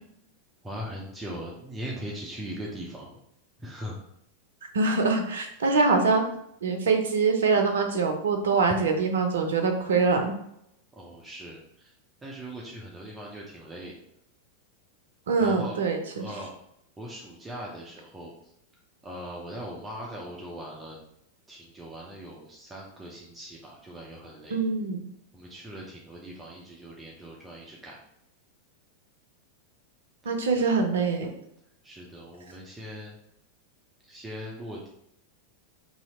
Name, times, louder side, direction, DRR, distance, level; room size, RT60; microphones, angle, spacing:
voice 1, 0.6-3.2 3.6-4.0 11.0-11.9 12.2-13.9 15.4-15.8 16.2-16.5 17.0-18.3 19.0-21.0 21.5-24.6 25.3-28.0 30.5-30.7 31.8-33.1 34.1-34.9, equal, 15° right, -3 dB, 0.7 m, -40 dB
voice 2, 4.7-6.2 6.6-10.3 15.3-16.3 24.5-25.0 30.2-31.3, right 4 dB, 65° right, 4 dB, 0.6 m, -24 dB
2.9 x 2.8 x 4.3 m, 0.77 s
figure-of-eight pair, 90°, 0 cm